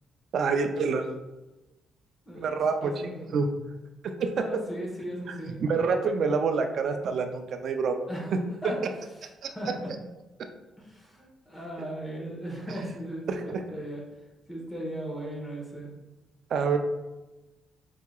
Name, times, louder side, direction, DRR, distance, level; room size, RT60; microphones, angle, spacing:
voice 1, 0.3-1.1 2.4-3.5 4.2-4.3 5.3-8.0 9.4-9.5 13.3-13.6 16.5-16.8, right 5 dB, 65° right, 6 dB, 0.4 m, -27 dB
voice 2, 2.8-3.3 4.3-5.6 8.1-8.3 8.6-8.8 9.4-9.9 10.8-14.0 14.5-15.9, right 1 dB, 15° left, -2 dB, 1.0 m, -37 dB
4.8 x 2.7 x 2.3 m, 1.1 s
cardioid pair, 90°, 0 cm